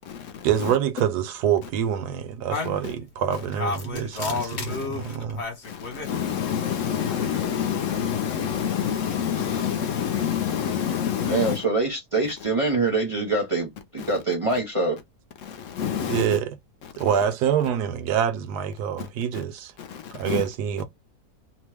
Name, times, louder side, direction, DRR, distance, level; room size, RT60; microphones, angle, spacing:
voice 1, 0.4-5.4 16.1-16.6 17.0-19.7 20.1-20.8, right 9 dB, 80° right, 1.1 m, -26 dB
sound 1, 2.5-6.1 6.9-7.6, left 4 dB, 50° left, 1.2 m, -32 dB
voice 2, 4.3-4.8 5.7-5.8 6.0-11.6 15.5-16.2 19.8-20.0 20.2-20.4, left 8 dB, 65° left, 0.8 m, -27 dB
voice 3, 11.3-15.0, right 3 dB, 30° right, 0.6 m, -24 dB
2.9 x 2.1 x 3.3 m
omnidirectional pair, 1.7 m